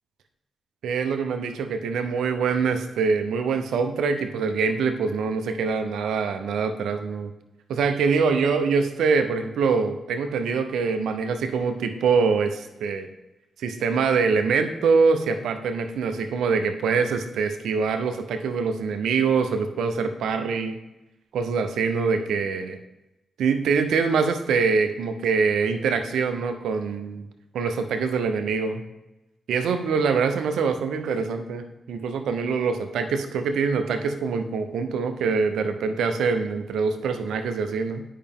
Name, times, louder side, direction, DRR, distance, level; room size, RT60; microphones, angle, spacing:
voice 1, 0.8-7.3 7.7-13.1 13.6-20.8 21.3-22.8 23.4-27.2 27.5-28.8 29.5-38.0, right 5 dB, 85° right, 7 dB, 0.7 m, -24 dB
8.6 x 5.6 x 3.6 m, 0.96 s
supercardioid pair, 45°, 0 cm